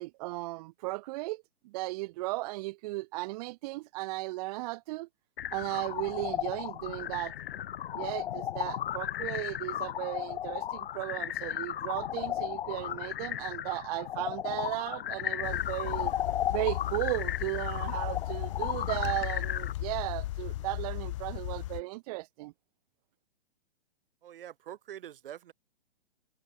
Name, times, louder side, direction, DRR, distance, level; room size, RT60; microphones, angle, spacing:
voice 1, 0.0-5.1 5.5-7.3 7.9-16.1 16.5-22.5, right 21 dB, 40° right, 2.1 m, -36 dB
sound 1, 5.4-19.7, left 11 dB, 65° left, 0.9 m, -35 dB
sound 2, 15.4-21.8, left 16 dB, 30° left, 0.4 m, -36 dB
voice 2, 24.2-25.5, right 11 dB, 60° right, 2.1 m, -45 dB
hypercardioid pair, 145°, 31 cm